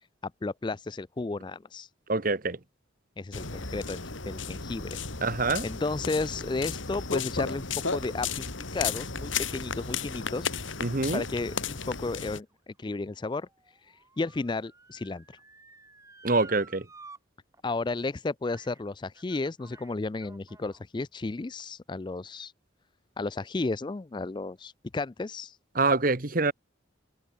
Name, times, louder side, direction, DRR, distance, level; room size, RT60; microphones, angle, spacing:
voice 1, 0.2-1.9 3.2-5.0 5.6-10.5 11.1-13.5 14.2-15.2 17.6-22.5 23.2-25.6, left 3 dB, 25° left, 0.4 m, -33 dB
voice 2, 2.1-2.6 5.2-5.7 10.8-11.2 16.2-16.9 25.7-26.5, right 3 dB, 45° right, 1.3 m, -25 dB
sound 1, 3.3-12.4, left 5 dB, 85° left, 3.5 m, -34 dB
Motor vehicle (road) / Siren, 12.5-17.2 17.5-17.6 18.5-18.8 19.1-20.8 21.5-21.6, right 3 dB, 15° right, 4.0 m, -53 dB
head